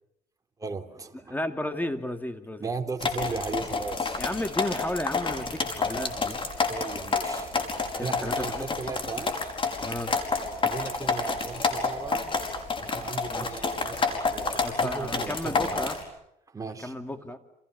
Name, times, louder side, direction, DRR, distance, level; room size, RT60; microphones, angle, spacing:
voice 1, 0.6-1.4 2.6-4.2 6.7-7.7 8.0-9.3 10.6-12.3 12.8-15.9 16.5-16.9, right 4 dB, 20° right, 4 dB, 3.5 m, -36 dB
voice 2, 1.3-2.7 4.0-6.4 8.0-8.7 9.8-10.1 13.3-13.7 14.6-16.0 16.8-17.4, left 1 dB, 10° left, 8 dB, 2.6 m, -33 dB
sound 1, 3.0-16.0, left 4 dB, 30° left, 5.1 m, -29 dB
29.5 x 28.5 x 7.0 m, 0.80 s
cardioid pair, 110°, 17 cm